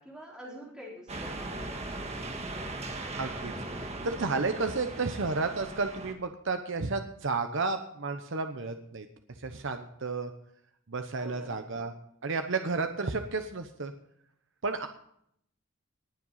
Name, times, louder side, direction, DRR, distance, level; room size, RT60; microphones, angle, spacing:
voice 1, 0.0-2.1 11.2-11.6, equal, 5° right, -5 dB, 4.2 m, -47 dB
sound 1, 1.1-6.1, right 2 dB, 30° right, 1.5 m, -38 dB
voice 2, 3.2-3.5 4.0-9.1 9.4-10.3 10.9-11.9 12.2-13.9 14.6-14.9, right 3 dB, 65° right, 7 dB, 0.9 m, -32 dB
19.5 x 7.7 x 5.6 m, 0.72 s
head